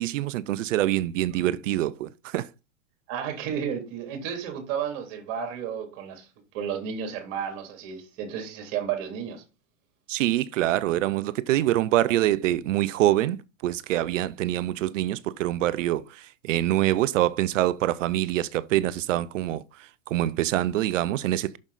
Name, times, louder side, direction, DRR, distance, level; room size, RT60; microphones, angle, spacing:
voice 1, 0.0-2.5 10.1-21.6, right 14 dB, 70° right, 0.6 m, -25 dB
voice 2, 3.1-6.3 6.5-9.4, right 8 dB, 50° right, 3.1 m, -32 dB
7.1 x 6.4 x 4.0 m
hypercardioid pair, 115°, 40 cm